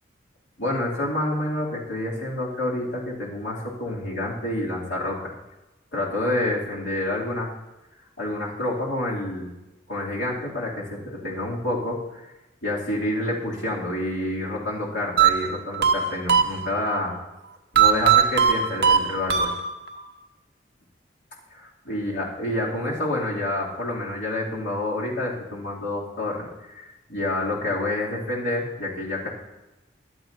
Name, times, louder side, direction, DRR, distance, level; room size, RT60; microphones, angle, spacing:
voice 1, 0.6-5.3 5.9-7.5 8.2-9.5 9.9-12.2 12.6-17.1 17.7-19.5 21.5-29.3, left 1 dB, 85° left, -5 dB, 2.7 m, -28 dB
sound 1, 15.2-17.0 17.7-20.0, right 8 dB, 55° right, 0.9 m, -20 dB
23.0 x 7.9 x 2.7 m, 1.0 s
head